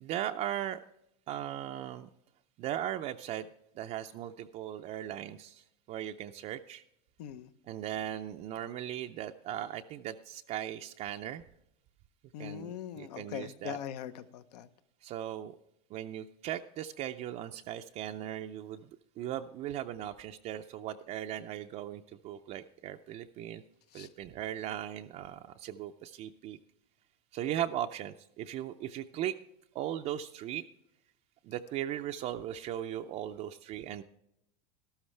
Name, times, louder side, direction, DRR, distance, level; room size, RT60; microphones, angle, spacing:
voice 1, 0.0-0.8 1.3-2.1 2.6-3.5 3.8-6.8 7.7-11.4 12.4-13.8 15.0-15.5 15.9-18.9 19.2-23.6 23.9-26.6 27.3-29.3 29.7-30.6 31.4-34.0, right 11 dB, 35° right, 0.4 m, -38 dB
voice 2, 12.3-14.7 24.0-24.1, left 10 dB, 80° left, 0.9 m, -41 dB
13.0 x 13.0 x 3.3 m
supercardioid pair, 145°, 20 cm